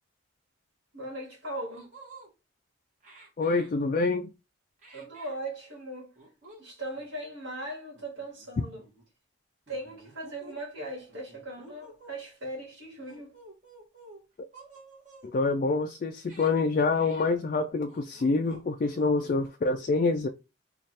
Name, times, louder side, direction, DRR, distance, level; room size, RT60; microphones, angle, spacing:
voice 1, 0.9-1.9 4.9-6.1 6.6-8.8 9.7-13.3, right 1 dB, 70° right, 1.6 m, -39 dB
sound 1, 1.7-2.3 3.0-3.7 4.8-5.4 6.2-6.6 6.9-7.1 7.9-8.5 8.8-9.0 9.7-10.6 11.1-12.2 13.0-14.2 14.5-15.3 16.1-16.5 16.9-17.3 17.9-18.7 18.9-19.5, right 2 dB, 40° right, 1.2 m, -52 dB
voice 2, 3.4-4.3 15.2-20.3, left 3 dB, 45° left, 0.3 m, -26 dB
3.2 x 2.4 x 4.1 m
head